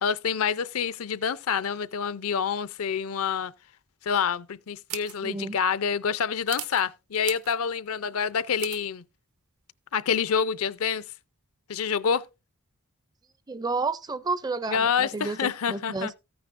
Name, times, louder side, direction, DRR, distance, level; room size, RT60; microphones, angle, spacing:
voice 1, 0.0-3.5 4.0-9.0 9.9-11.0 11.7-12.2 14.7-16.1, left 7 dB, 70° left, 0.5 m, -27 dB
sound 1, 4.9-5.2 6.5-6.8 7.2-7.6 8.6-8.8, right 13 dB, 75° right, 0.8 m, -37 dB
voice 2, 5.2-5.6 13.5-16.1, right 3 dB, 15° right, 0.4 m, -31 dB
14.0 x 9.4 x 2.5 m
head